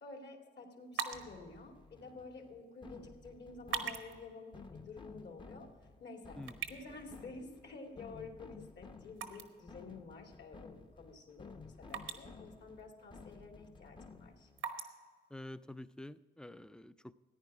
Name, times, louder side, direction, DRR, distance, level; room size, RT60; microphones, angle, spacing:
voice 1, 0.0-5.7 6.0-6.4 6.7-14.5, left 3 dB, 60° left, 2 dB, 2.5 m, -50 dB
sound 1, 0.8-16.2, right 7 dB, 85° right, 1.1 m, -48 dB
sound 2, 1.1-14.6, left 4 dB, 25° left, 0.8 m, -55 dB
voice 2, 6.4-6.7 15.3-17.1, left 1 dB, 5° left, 14 dB, 0.4 m, -48 dB
14.5 x 9.9 x 4.8 m, 1.4 s
cardioid pair, 90°, 20 cm